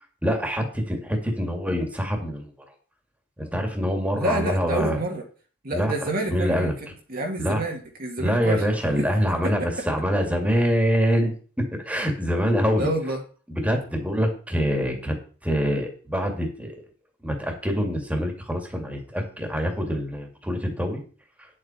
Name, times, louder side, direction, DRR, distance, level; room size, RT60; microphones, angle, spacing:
voice 1, 0.2-2.5 3.4-5.0 5.7-6.7 7.4-7.6 8.2-12.9 13.5-15.2 15.4-16.8 17.2-21.0, equal, 5° right, 3 dB, 2.2 m, -25 dB
voice 2, 4.1-5.2 5.6-8.7 9.0-9.1 9.4-9.7 12.8-13.2, right 1 dB, 50° right, 1 dB, 1.9 m, -28 dB
10.5 x 7.6 x 4.4 m, 0.40 s
head